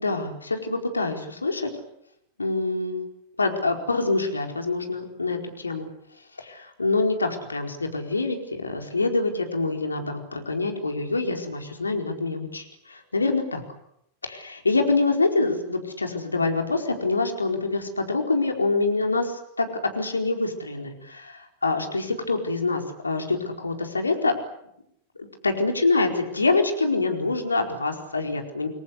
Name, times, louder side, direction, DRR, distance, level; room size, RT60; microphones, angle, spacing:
voice 1, 0.0-1.7 2.4-3.0 3.4-5.9 6.4-13.6 14.2-19.7 19.9-24.3 25.2-28.7, left 3 dB, 80° left, 4 dB, 4.6 m, -25 dB
29.0 x 22.5 x 8.1 m, 0.76 s
figure-of-eight pair, 90°, 0 cm